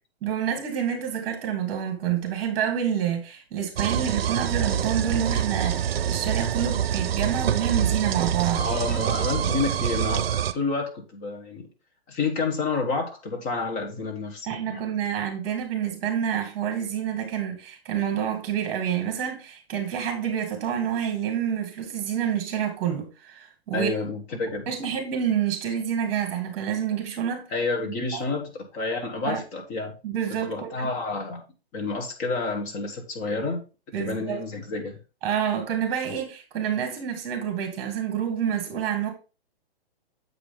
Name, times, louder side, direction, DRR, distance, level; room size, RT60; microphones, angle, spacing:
voice 1, 0.2-8.7 14.5-23.9 24.7-27.5 28.1-28.2 29.3-29.4 30.0-30.9 33.9-34.4 35.2-39.1, right 9 dB, 30° right, 2.5 m, -28 dB
sound 1, 3.8-10.5, right 9 dB, 70° right, 0.6 m, -26 dB
voice 2, 8.6-11.7 12.1-14.8 23.7-24.7 27.5-29.9 30.4-31.4 31.7-33.6 34.0-35.0, left 3 dB, 25° left, 1.3 m, -29 dB
7.9 x 4.9 x 3.8 m
hypercardioid pair, 145°, 31 cm